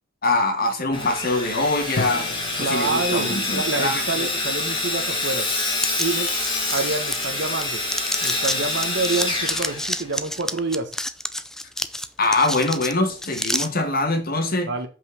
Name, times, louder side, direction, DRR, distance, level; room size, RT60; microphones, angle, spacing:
voice 1, 0.2-2.3 2.6-4.3 12.2-14.7, left 2 dB, 50° left, 1.6 m, -23 dB
Sawing, 0.9-10.4, left 2 dB, 25° left, 2.6 m, -27 dB
sound 1, 2.0-5.4, left 2 dB, 65° left, 1.1 m, -36 dB
voice 2, 2.6-5.5 6.0-6.3 6.7-7.8 8.2-10.9 14.6-14.9, right 3 dB, 60° right, 1.2 m, -27 dB
sound 2, 5.8-7.6 7.9-13.7, left 1 dB, 5° left, 0.4 m, -29 dB
5.5 x 5.5 x 6.4 m
head